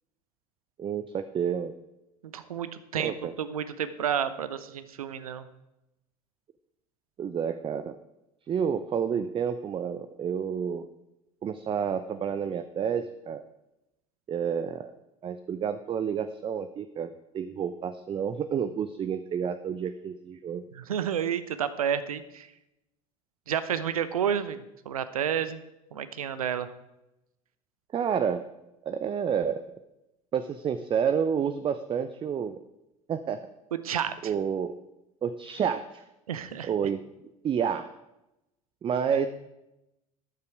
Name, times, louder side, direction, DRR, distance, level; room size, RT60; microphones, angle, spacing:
voice 1, 0.8-1.8 3.0-3.3 7.2-8.0 8.5-10.9 11.4-13.4 14.3-14.9 15.2-20.6 27.9-28.4 28.8-29.6 30.3-32.6 33.1-33.4 34.2-34.7 35.2-36.0 36.6-37.0 37.4-37.9 38.8-39.3, right 7 dB, 30° right, 11 dB, 0.6 m, -29 dB
voice 2, 2.2-5.4 20.7-22.5 23.5-25.6 25.9-26.7 33.7-34.3 36.3-36.7 39.1-39.3, right 8 dB, 75° right, 13 dB, 0.8 m, -30 dB
13.5 x 9.7 x 4.6 m, 0.91 s
figure-of-eight pair, 70°, 19 cm